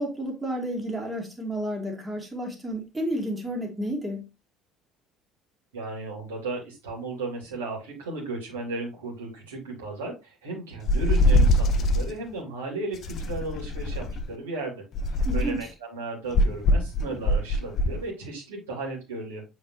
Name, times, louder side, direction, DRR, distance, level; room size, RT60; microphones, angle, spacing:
voice 1, 0.0-4.3 15.2-15.7, right 1 dB, 15° right, 2.2 m, -31 dB
voice 2, 5.7-19.4, right 3 dB, 70° right, 2.9 m, -35 dB
sound 1, 10.9-12.1 13.0-14.3 14.9-15.6 16.3-18.0, left 1 dB, 45° left, 0.7 m, -22 dB
7.4 x 4.4 x 3.2 m
figure-of-eight pair, 55°, 0 cm